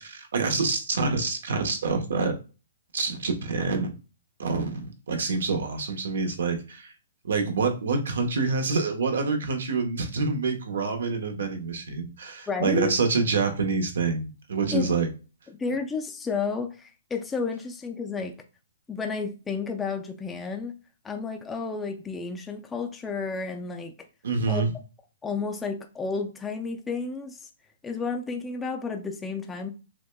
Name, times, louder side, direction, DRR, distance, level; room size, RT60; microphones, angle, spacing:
voice 1, 0.0-2.3 2.9-3.9 4.4-6.9 7.2-15.1 24.2-24.7, right 4 dB, 80° right, 0.9 m, -27 dB
voice 2, 12.5-12.9 14.7-14.9 15.5-18.3 18.9-20.8 21.0-23.9 24.5-24.6 25.2-27.5 27.8-29.7, left 4 dB, 10° left, 0.3 m, -31 dB
6.1 x 2.2 x 2.2 m
hypercardioid pair, 160°, 0 cm